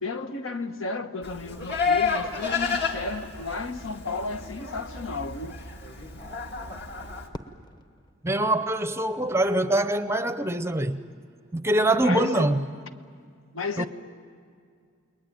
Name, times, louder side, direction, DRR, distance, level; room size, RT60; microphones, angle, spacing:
voice 1, 0.0-5.6 12.0-12.6 13.5-13.9, left 3 dB, 70° left, 1.2 m, -33 dB
Livestock farm animals working animals, 1.2-7.3, left 5 dB, 50° left, 2.0 m, -31 dB
Fireworks, 7.3-9.5, left 1 dB, 20° left, 1.0 m, -46 dB
voice 2, 8.2-11.0 11.5-12.6 13.8-13.9, right 1 dB, 10° right, 0.6 m, -24 dB
29.5 x 21.0 x 9.0 m
head